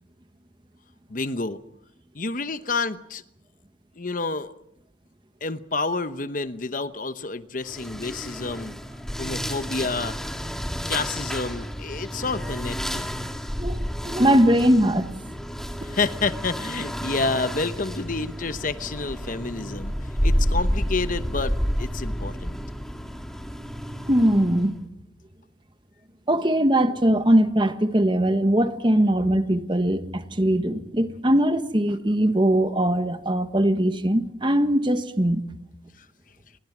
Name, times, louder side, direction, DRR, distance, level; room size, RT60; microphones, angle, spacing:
voice 1, 1.1-1.6 2.1-3.2 4.0-4.5 5.4-8.8 9.2-10.2 10.9-13.1 15.8-19.9 20.2-22.6 36.0-36.1, left 3 dB, 45° left, 0.9 m, -29 dB
sound 1, 7.6-24.8, equal, ahead, 1.9 m, -30 dB
voice 2, 13.6-15.3 24.1-24.8 26.3-35.4, right 1 dB, 25° right, 1.4 m, -21 dB
28.0 x 23.0 x 6.1 m
head